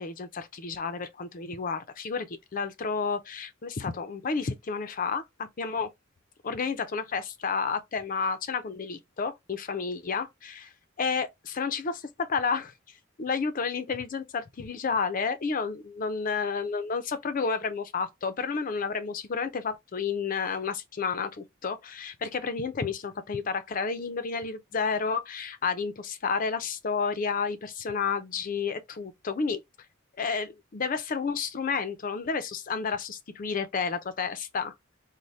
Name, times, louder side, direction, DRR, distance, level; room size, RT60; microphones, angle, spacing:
voice 1, 0.0-5.9 6.4-10.7 11.0-12.7 13.2-29.6 30.2-34.7, left 5 dB, 40° left, 0.4 m, -31 dB
4.0 x 2.1 x 3.1 m
head